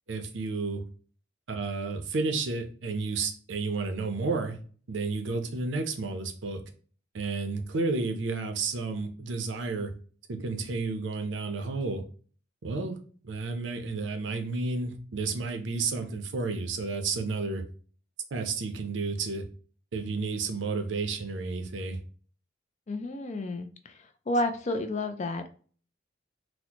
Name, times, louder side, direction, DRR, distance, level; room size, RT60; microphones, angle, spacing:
voice 1, 0.1-0.8 1.5-4.6 4.9-6.6 7.1-9.9 10.3-12.0 12.6-13.0 13.2-17.6 18.3-19.4 19.9-22.0, right 3 dB, 85° right, 6 dB, 0.6 m, -31 dB
voice 2, 22.9-23.9 24.3-25.5, left 1 dB, 40° left, 8 dB, 0.4 m, -30 dB
4.1 x 2.1 x 2.8 m, 0.42 s
head